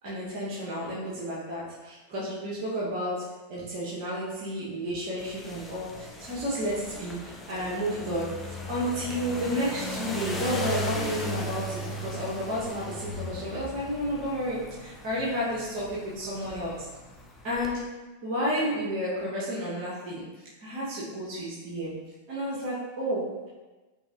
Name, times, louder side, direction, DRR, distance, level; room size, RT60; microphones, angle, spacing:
voice 1, 0.0-3.2 3.5-16.9 17.4-17.8 18.2-21.9 22.3-23.5, equal, 45° right, -7 dB, 1.1 m, -31 dB
sound 1, 5.2-17.7, left 1 dB, 10° left, 0.6 m, -37 dB
5.2 x 3.4 x 2.5 m, 1.2 s
figure-of-eight pair, 90°, 0 cm